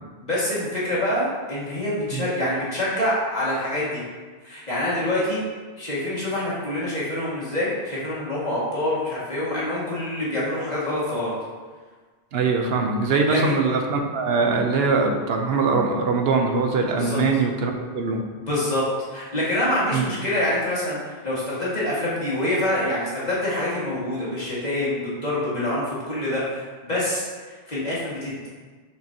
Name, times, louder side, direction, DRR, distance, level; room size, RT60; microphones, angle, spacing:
voice 1, 0.2-4.0 4.4-5.4 5.8-11.3 13.1-13.5 17.0-17.2 18.4-18.8 19.1-28.5, left 1 dB, 40° left, -8 dB, 2.1 m, -26 dB
voice 2, 12.3-18.2 19.9-20.0, right 4 dB, 75° right, 3 dB, 0.9 m, -22 dB
6.1 x 6.0 x 2.8 m, 1.4 s
omnidirectional pair, 1.0 m